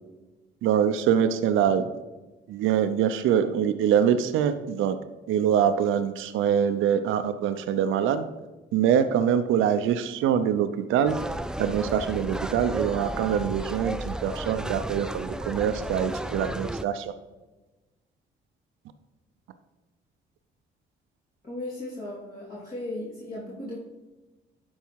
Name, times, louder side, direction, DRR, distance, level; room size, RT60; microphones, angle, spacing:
voice 1, 0.6-1.9 2.5-5.0 5.3-8.2 8.7-11.2 11.6-17.1, right 8 dB, 85° right, 10 dB, 0.6 m, -24 dB
sound 1, 11.1-16.8, right 1 dB, 5° right, 0.3 m, -33 dB
voice 2, 21.4-23.8, left 1 dB, 45° left, -8 dB, 3.2 m, -36 dB
12.0 x 4.7 x 4.6 m, 1.1 s
cardioid pair, 90°, 20 cm